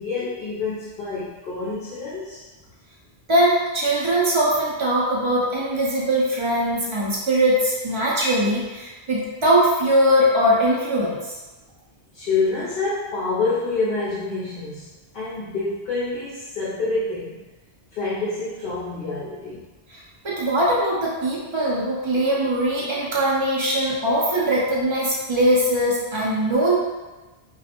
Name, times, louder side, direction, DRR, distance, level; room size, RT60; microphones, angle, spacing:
voice 1, 0.0-2.4 12.1-17.4 17.9-19.7, left 3 dB, 60° left, -8 dB, 0.7 m, -27 dB
voice 2, 3.3-11.2 19.9-26.8, right 1 dB, 35° right, -6 dB, 0.5 m, -21 dB
2.3 x 2.0 x 2.8 m, 1.2 s
omnidirectional pair, 1.1 m